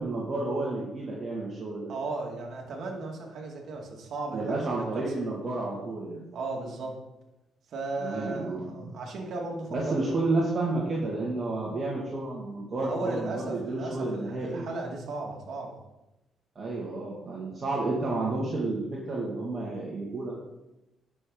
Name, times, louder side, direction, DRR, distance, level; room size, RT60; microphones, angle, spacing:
voice 1, 0.0-1.9 4.3-6.2 8.0-8.9 9.7-14.7 16.6-20.3, right 2 dB, 40° right, -5 dB, 2.3 m, -31 dB
voice 2, 1.9-5.1 6.3-7.0 7.7-10.2 12.7-15.8, right 3 dB, 65° right, 0 dB, 2.2 m, -36 dB
10.5 x 6.9 x 4.0 m, 0.95 s
cardioid pair, 90°, 0 cm